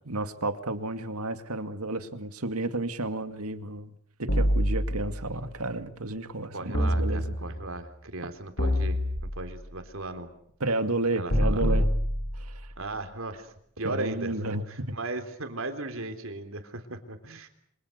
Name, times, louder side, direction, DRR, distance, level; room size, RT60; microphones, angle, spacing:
voice 1, 0.1-3.9 4.2-7.3 10.6-11.9 12.4-12.6 13.8-15.0, right 2 dB, 85° right, 9 dB, 2.2 m, -31 dB
sound 1, 4.3-5.4 6.7-7.7 8.6-9.7 11.3-12.7, equal, 75° left, 7.2 m, -26 dB
voice 2, 6.5-10.3 11.2-11.8 12.8-17.5, right 2 dB, 65° right, 8 dB, 3.5 m, -37 dB
27.5 x 26.0 x 6.7 m, 0.68 s
head